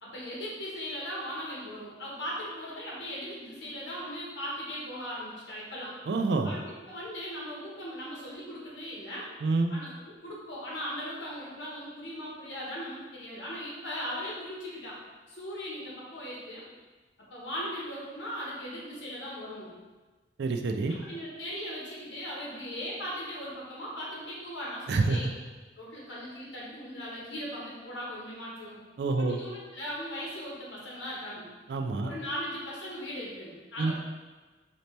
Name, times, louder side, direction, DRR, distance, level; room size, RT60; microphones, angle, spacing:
voice 1, 0.0-6.0 6.4-9.3 9.7-9.9 10.2-15.0 15.3-16.7 17.3-19.7 20.9-25.3 25.8-28.8 29.2-31.5 32.0-33.9, equal, 85° left, -5 dB, 1.2 m, -38 dB
voice 2, 6.1-6.5 9.4-9.7 20.4-21.0 24.9-25.2 29.0-29.4 31.7-32.1 33.8-33.9, right 3 dB, 65° right, 5 dB, 0.3 m, -27 dB
4.1 x 2.8 x 3.3 m, 1.3 s
head